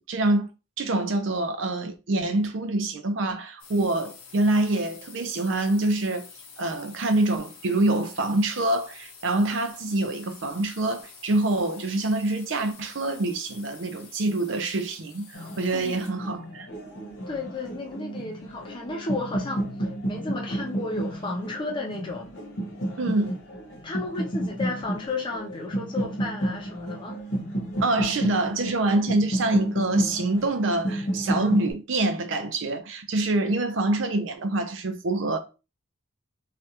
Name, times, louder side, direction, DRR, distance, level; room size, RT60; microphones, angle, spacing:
voice 1, 0.1-0.5 0.8-6.3 6.6-16.7 23.0-23.3 27.8-35.4, right 2 dB, 60° right, 0.5 m, -25 dB
sound 1, 3.6-16.3, left 5 dB, 90° left, 0.8 m, -48 dB
sound 2, 15.3-31.7, right 1 dB, 50° left, 0.9 m, -32 dB
voice 2, 17.3-22.3 23.8-27.2, left 3 dB, 20° left, 0.5 m, -33 dB
3.2 x 2.3 x 2.8 m
head